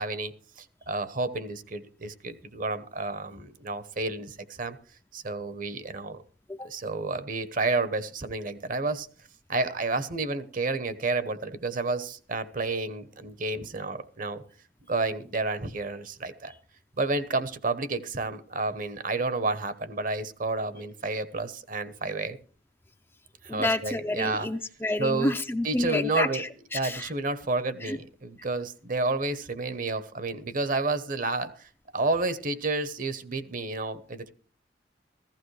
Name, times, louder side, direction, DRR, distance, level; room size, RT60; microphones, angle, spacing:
voice 1, 0.0-4.8 5.1-6.2 6.6-9.1 9.5-14.4 14.9-16.5 17.0-22.4 23.4-24.5 25.0-25.3 25.6-26.4 26.7-31.7 31.9-34.3, right 3 dB, 50° right, 12 dB, 1.0 m, -30 dB
voice 2, 23.5-27.1 27.8-28.0, left 2 dB, 15° left, 8 dB, 0.5 m, -29 dB
15.0 x 15.0 x 3.3 m, 0.39 s
head